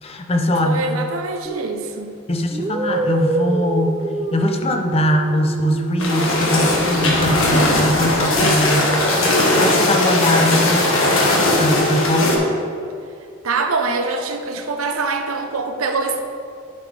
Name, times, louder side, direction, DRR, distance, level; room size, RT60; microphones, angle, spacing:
voice 1, 0.0-0.9 2.3-12.4, left 1 dB, 30° left, 4 dB, 0.6 m, -21 dB
voice 2, 0.6-2.2 13.4-16.2, right 3 dB, 85° right, 5 dB, 0.8 m, -24 dB
sound 1, 1.5-1.7 2.5-7.9 8.3-12.2, right 2 dB, 20° right, 0.3 m, -29 dB
sound 2, 6.0-12.4, left 1 dB, 70° left, 1.3 m, -18 dB
11.0 x 4.1 x 4.9 m, 2.4 s
head